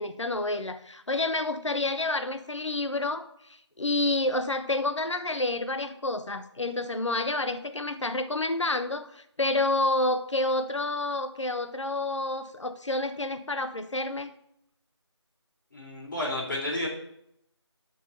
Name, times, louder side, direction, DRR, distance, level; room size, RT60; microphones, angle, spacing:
voice 1, 0.0-3.3 3.8-14.3, left 2 dB, 90° left, 9 dB, 1.0 m, -29 dB
voice 2, 15.7-16.9, left 1 dB, 45° left, -3 dB, 3.4 m, -31 dB
8.0 x 5.3 x 5.1 m, 0.74 s
figure-of-eight pair, 175°, 15 cm